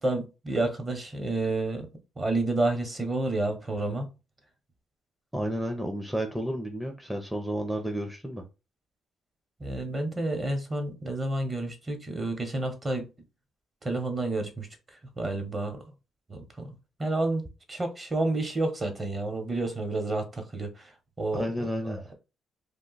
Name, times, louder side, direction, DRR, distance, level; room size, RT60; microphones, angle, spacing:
voice 1, 0.0-1.9 2.2-4.1 9.6-13.1 13.8-14.7 15.2-15.8 16.3-16.7 17.0-17.4 17.7-20.7 21.2-21.4 21.8-22.1, right 2 dB, 30° right, 1.0 m, -29 dB
voice 2, 5.3-8.4 21.3-22.1, equal, 5° right, 0.6 m, -31 dB
2.5 x 2.3 x 3.9 m
cardioid pair, 90°, 0 cm